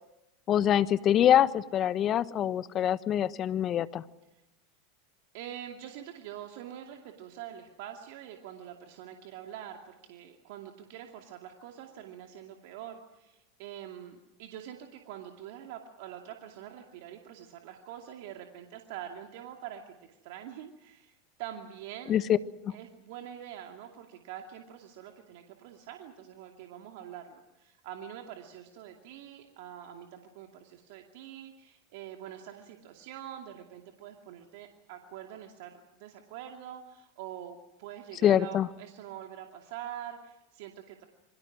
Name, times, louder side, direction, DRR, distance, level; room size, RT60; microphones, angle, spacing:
voice 1, 0.5-4.0 22.1-22.4 22.6-22.7 38.2-38.7, left 10 dB, 40° left, 15 dB, 1.2 m, -25 dB
voice 2, 5.3-21.1 21.4-22.2 22.7-41.1, right 10 dB, 65° right, 3 dB, 2.5 m, -45 dB
28.0 x 23.5 x 6.2 m, 0.96 s
hypercardioid pair, 90°, 0 cm